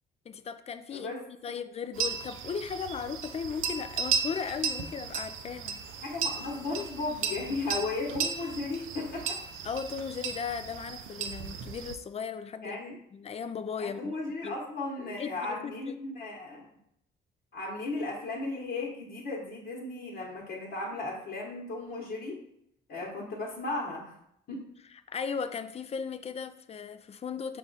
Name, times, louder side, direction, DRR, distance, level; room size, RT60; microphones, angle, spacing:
voice 1, 0.3-1.1 1.4-5.8 9.6-12.8 13.1-14.2 14.4-14.6 15.0-16.0 23.2-23.3 25.1-27.6, left 6 dB, 30° left, 11 dB, 0.3 m, -36 dB
Sound of the cow's bell in the Galician mountains, 1.9-12.0, right 6 dB, 85° right, 0.5 m, -35 dB
voice 2, 6.0-9.4 12.6-13.0 13.8-16.7 17.5-22.5 22.9-24.2 24.5-24.7, left 3 dB, 60° left, -4 dB, 1.2 m, -35 dB
5.6 x 2.4 x 3.9 m, 0.73 s
cardioid pair, 90°, 20 cm